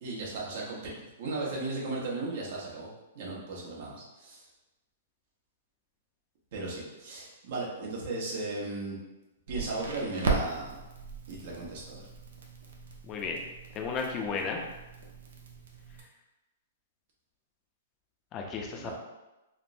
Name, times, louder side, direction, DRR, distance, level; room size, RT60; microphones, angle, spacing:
voice 1, 0.0-2.9 3.1-4.4 6.5-9.0 9.5-10.7 11.3-12.0 18.7-18.9, right 3 dB, 60° right, -5 dB, 1.0 m, -36 dB
Crackle, 9.5-16.0, right 4 dB, 80° right, 0.6 m, -37 dB
voice 2, 13.1-13.4 13.8-14.6 18.3-18.9, left 5 dB, 30° left, 1 dB, 0.5 m, -33 dB
3.4 x 2.1 x 2.6 m, 1.0 s
hypercardioid pair, 140°, 0 cm